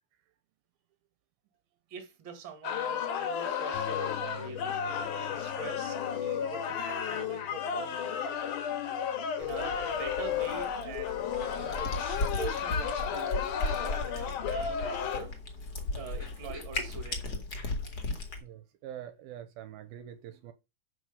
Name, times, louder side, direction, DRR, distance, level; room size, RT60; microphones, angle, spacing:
voice 1, 1.9-8.1 9.4-11.2 11.6-13.4 13.6-15.4 15.9-17.5, right 5 dB, 40° right, 2.1 m, -44 dB
sound 1, 2.6-15.2, left 8 dB, 65° left, 2.3 m, -33 dB
sound 2, 3.7-10.0, left 8 dB, 90° left, 3.4 m, -49 dB
Cat, 9.4-18.4, left 2 dB, 40° left, 1.4 m, -36 dB
voice 2, 18.4-20.5, right 10 dB, 80° right, 2.5 m, -45 dB
7.8 x 6.3 x 5.6 m
omnidirectional pair, 4.5 m